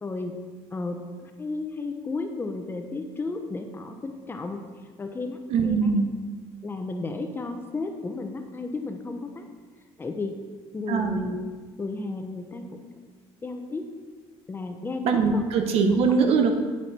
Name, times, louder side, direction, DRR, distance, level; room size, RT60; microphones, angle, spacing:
voice 1, 0.0-0.4 0.7-4.6 5.0-6.0 6.6-9.5 10.0-10.4 10.7-11.4 11.8-12.8 13.4-13.9 14.5-15.4, left 3 dB, 20° left, 5 dB, 0.8 m, -33 dB
voice 2, 5.5-6.1 10.9-11.2 15.0-16.5, right 5 dB, 65° right, 5 dB, 1.1 m, -22 dB
8.9 x 8.7 x 4.3 m, 1.4 s
cardioid pair, 150°, 11 cm